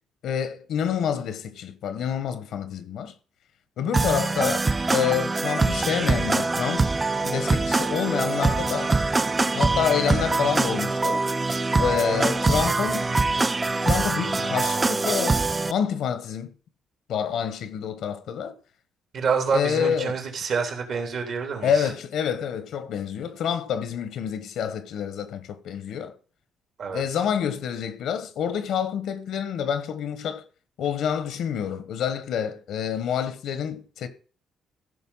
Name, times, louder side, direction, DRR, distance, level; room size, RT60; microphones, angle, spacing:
voice 1, 0.2-3.1 3.8-4.6 4.9-6.9 7.2-9.0 9.5-11.3 11.8-13.1 13.8-16.5 17.1-18.6 19.5-20.1 21.6-26.2 26.9-30.5 30.8-34.1, left 8 dB, 75° left, 1.2 m, -27 dB
sound 1, 3.9-15.7, right 3 dB, 25° right, 0.5 m, -24 dB
voice 2, 19.1-21.9 26.8-27.0, right 5 dB, 65° right, 3.2 m, -27 dB
14.5 x 5.5 x 5.6 m
cardioid pair, 90°, 0 cm